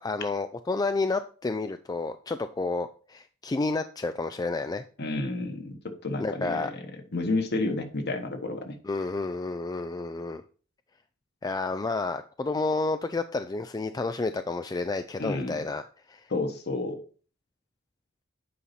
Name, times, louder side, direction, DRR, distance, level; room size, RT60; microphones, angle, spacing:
voice 1, 0.0-4.8 6.2-6.7 8.8-10.4 11.4-15.8 16.1-16.3, left 3 dB, 20° left, 9 dB, 0.3 m, -30 dB
voice 2, 5.0-6.8 7.1-8.8 15.2-15.6 16.3-17.0, left 2 dB, 50° left, 6 dB, 1.3 m, -30 dB
8.5 x 5.5 x 4.2 m, 0.38 s
head